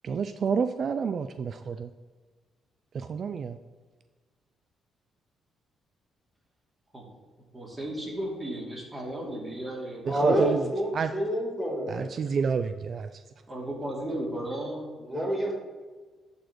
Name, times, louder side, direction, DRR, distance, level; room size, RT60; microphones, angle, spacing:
voice 1, 0.0-1.9 2.9-3.6 10.1-11.1 11.9-13.2, right 6 dB, 50° right, 10 dB, 0.3 m, -29 dB
voice 2, 7.5-10.6 13.5-14.9, right 1 dB, 20° right, -2 dB, 2.7 m, -35 dB
voice 3, 10.1-12.0 15.0-15.5, equal, 5° left, -1 dB, 2.6 m, -28 dB
11.5 x 4.2 x 4.6 m, 1.4 s
cardioid pair, 90°, 0 cm